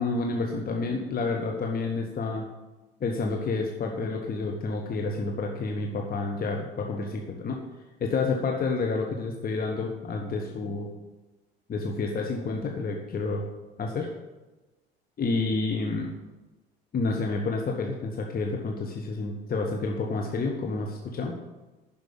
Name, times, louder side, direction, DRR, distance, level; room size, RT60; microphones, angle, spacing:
voice 1, 0.0-2.5 3.0-7.6 8.0-10.9 11.7-13.4 13.8-14.1 15.2-16.1 16.9-21.4, left 3 dB, 30° left, 1 dB, 1.3 m, -29 dB
11.5 x 5.4 x 8.5 m, 1.1 s
figure-of-eight pair, 60°, 30 cm